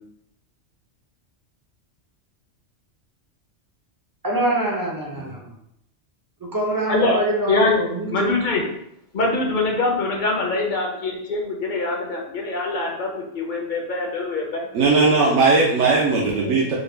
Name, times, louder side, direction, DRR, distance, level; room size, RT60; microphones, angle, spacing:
voice 1, 4.2-5.5 6.5-8.3, right 2 dB, 30° right, -2 dB, 0.3 m, -24 dB
voice 2, 6.9-7.2 7.5-7.7 8.1-8.7 9.1-14.6 16.1-16.5, left 2 dB, 55° left, 0 dB, 0.6 m, -23 dB
voice 3, 14.7-16.8, right 3 dB, 85° right, -3 dB, 0.9 m, -18 dB
3.9 x 2.1 x 3.2 m, 0.77 s
omnidirectional pair, 1.2 m